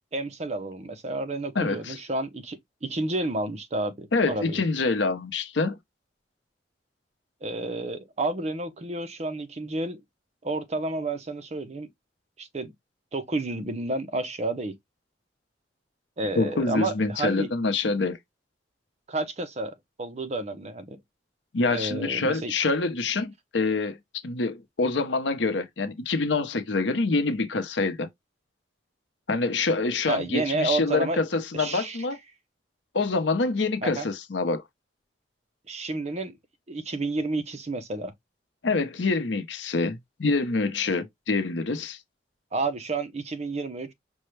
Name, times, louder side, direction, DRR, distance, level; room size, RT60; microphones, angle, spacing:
voice 1, 0.0-4.6 7.4-10.0 10.4-11.9 12.4-12.7 13.1-14.7 16.2-17.5 19.1-21.0 21.7-22.5 30.1-31.2 31.5-32.0 33.8-34.1 35.7-36.4 36.7-38.1 42.5-43.9, right 2 dB, 40° right, 0.6 m, -30 dB
voice 2, 1.6-2.0 4.1-5.8 16.4-18.2 21.5-24.0 24.2-28.1 29.3-32.2 32.9-34.6 38.6-42.0, left 3 dB, 85° left, 0.8 m, -26 dB
5.3 x 2.2 x 3.1 m
head